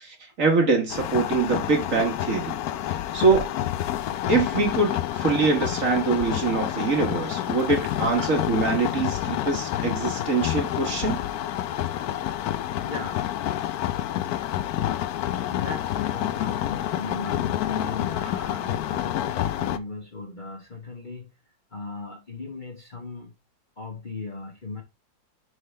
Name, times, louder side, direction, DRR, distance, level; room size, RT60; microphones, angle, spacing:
voice 1, 0.4-2.6 3.1-3.5 4.3-11.2, right 4 dB, 50° right, 1.5 m, -23 dB
sound 1, 0.9-19.8, left 12 dB, 70° left, 0.9 m, -28 dB
voice 2, 6.0-6.4 7.8-7.9 8.2-8.3 11.7-11.8 12.1-12.2 12.5-13.3 15.5-21.3 21.7-23.3 23.8-24.8, left 3 dB, 30° left, 1.2 m, -38 dB
9.7 x 3.6 x 3.3 m
omnidirectional pair, 2.0 m